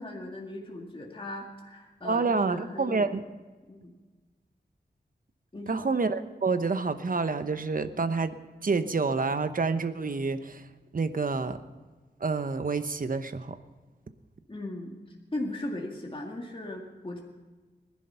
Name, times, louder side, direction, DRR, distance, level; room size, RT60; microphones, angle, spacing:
voice 1, 0.0-3.1 3.7-3.9 5.5-5.9 14.5-15.0 15.3-17.2, left 1 dB, 30° left, 0 dB, 2.1 m, -38 dB
voice 2, 2.0-3.2 5.7-8.3 8.6-10.7 10.9-11.6 12.2-13.6, right 4 dB, 55° right, 10 dB, 1.0 m, -28 dB
20.0 x 11.0 x 5.7 m, 1.3 s
wide cardioid pair, 75°, 18 cm